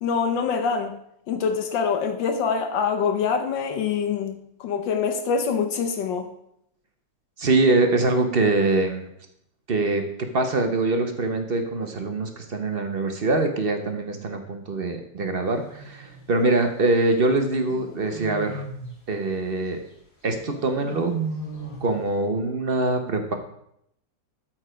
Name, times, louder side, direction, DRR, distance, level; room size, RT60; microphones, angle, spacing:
voice 1, 0.0-1.0 1.3-6.3, left 6 dB, 80° left, 5 dB, 1.6 m, -25 dB
voice 2, 7.4-9.0 9.7-10.0 10.3-18.6 19.1-19.8 20.2-21.1 21.8-23.3, right 2 dB, 45° right, 6 dB, 0.8 m, -23 dB
sound 1, 15.5-16.4 17.7-19.0 20.4-22.0, right 4 dB, 25° left, 3.5 m, -35 dB
12.5 x 4.4 x 5.0 m, 0.74 s
omnidirectional pair, 2.0 m